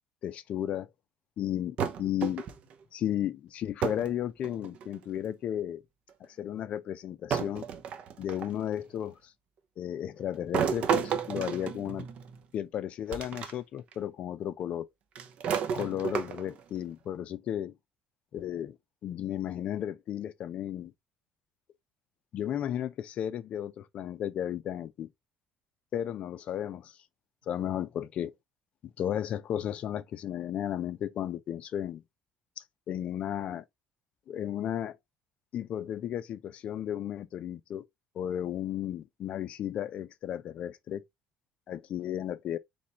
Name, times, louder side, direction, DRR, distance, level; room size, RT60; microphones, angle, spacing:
voice 1, 0.2-0.9 1.4-2.4 2.9-5.8 6.2-7.7 8.2-9.3 9.8-12.1 12.5-14.9 15.7-17.7 18.3-18.8 19.0-20.9 22.3-25.1 25.9-26.9 27.5-28.3 29.0-32.0 32.6-33.6 34.3-35.0 35.5-37.8 38.1-41.0 41.7-42.6, left 10 dB, 50° left, 0.5 m, -34 dB
sound 1, 1.8-2.7 3.8-4.1 4.4-5.0 6.1-6.2 7.3-8.6 10.5-12.4 13.1-13.5 13.9-14.0 15.2-16.6, right 7 dB, 50° right, 0.7 m, -32 dB
4.1 x 3.4 x 3.0 m
cardioid pair, 140°, 3 cm